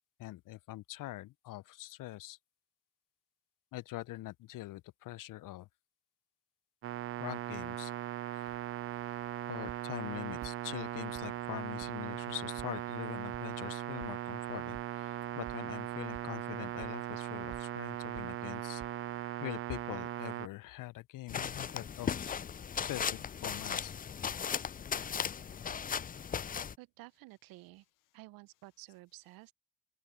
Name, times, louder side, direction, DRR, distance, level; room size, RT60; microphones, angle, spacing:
voice 1, 0.2-2.4 3.7-5.7 7.2-7.9 9.5-18.8 19.4-22.4 22.8-23.9, left 16 dB, 65° left, 0.7 m, -43 dB
sound 1, 6.8-20.5, right 13 dB, 40° right, 0.4 m, -39 dB
sound 2, 8.5-19.2, right 9 dB, 60° right, 2.4 m, -57 dB
sound 3, 21.3-26.7, left 7 dB, 25° left, 0.5 m, -37 dB
voice 2, 26.8-27.8 28.1-29.5, right 20 dB, 75° right, 1.0 m, -53 dB
open air
hypercardioid pair, 40°, 35 cm